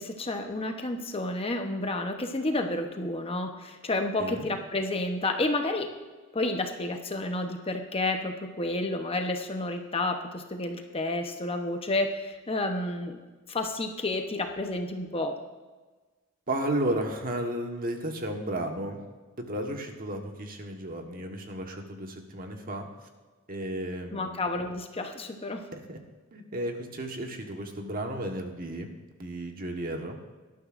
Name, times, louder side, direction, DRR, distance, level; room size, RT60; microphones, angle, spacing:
voice 1, 0.0-5.9 6.3-13.2 13.5-15.4 24.1-25.6, left 2 dB, 25° left, 4 dB, 0.9 m, -30 dB
voice 2, 16.5-19.0 19.4-22.9 23.5-24.4 25.7-26.0 26.3-28.9 29.2-30.2, right 1 dB, 45° right, 3 dB, 1.4 m, -33 dB
18.5 x 12.0 x 2.6 m, 1.3 s
head